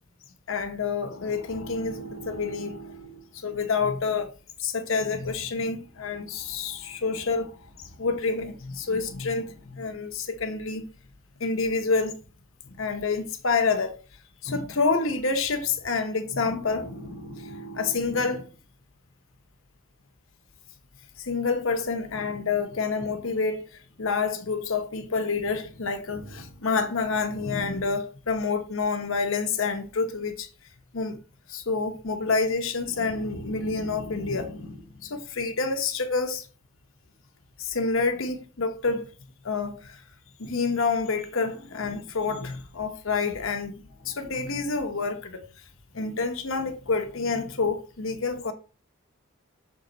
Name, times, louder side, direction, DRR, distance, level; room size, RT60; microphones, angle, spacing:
voice 1, 0.5-4.3 4.6-10.8 11.4-12.2 12.7-14.0 14.4-18.5 21.2-30.5 30.9-31.2 31.5-36.5 37.6-39.1 39.4-40.0 40.4-45.4 45.9-48.5, left 4 dB, 65° left, 1.0 m, -28 dB
6.5 x 3.8 x 3.9 m
head